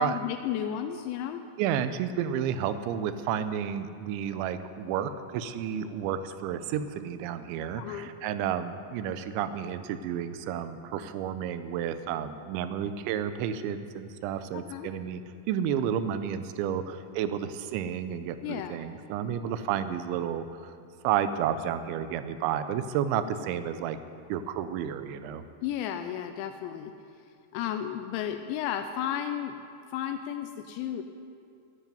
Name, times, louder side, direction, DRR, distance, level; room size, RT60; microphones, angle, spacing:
voice 1, 0.0-1.4 7.8-8.1 14.5-14.9 18.4-18.8 25.6-26.9 27.5-29.6 29.9-31.0, left 10 dB, 85° left, 7 dB, 2.9 m, -33 dB
voice 2, 1.6-15.2 15.5-20.7 21.0-24.0 24.3-25.4, right 9 dB, 90° right, 11 dB, 3.0 m, -31 dB
11.0 x 9.8 x 9.2 m, 2.5 s
omnidirectional pair, 5.2 m